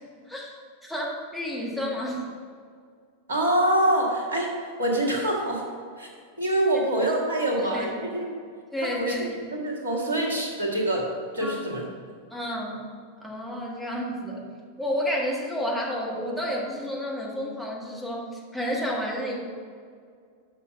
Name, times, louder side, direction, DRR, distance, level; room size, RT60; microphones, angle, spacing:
voice 1, 0.3-2.2 7.5-8.0 8.7-9.4 11.4-11.6 12.3-12.9 13.2-14.5 14.8-19.4, equal, ahead, -3 dB, 1.7 m, -31 dB
voice 2, 3.3-4.5 4.8-5.6 6.0-6.1 6.4-8.3 8.8-11.1 11.3-11.8, right 1 dB, 70° right, -1 dB, 1.6 m, -25 dB
7.0 x 5.7 x 5.6 m, 2.1 s
figure-of-eight pair, 90°, 0 cm